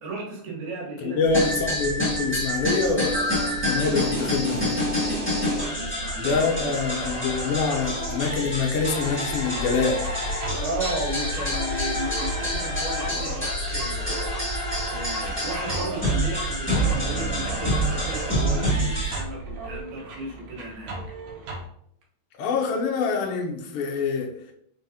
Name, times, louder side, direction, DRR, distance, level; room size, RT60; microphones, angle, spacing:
voice 1, 0.0-1.2 5.4-7.1 10.6-21.0, right 2 dB, 85° right, 2.7 m, -35 dB
voice 2, 1.0-4.9 6.2-10.1 22.4-24.3, left 4 dB, 75° left, 1.3 m, -26 dB
sound 1, 1.2-19.8, right 2 dB, 45° left, 1.9 m, -38 dB
sound 2, 1.3-19.2, equal, 10° left, 0.8 m, -27 dB
sound 3, 9.3-21.6, left 1 dB, 70° right, 2.1 m, -36 dB
4.9 x 3.9 x 2.7 m
omnidirectional pair, 3.4 m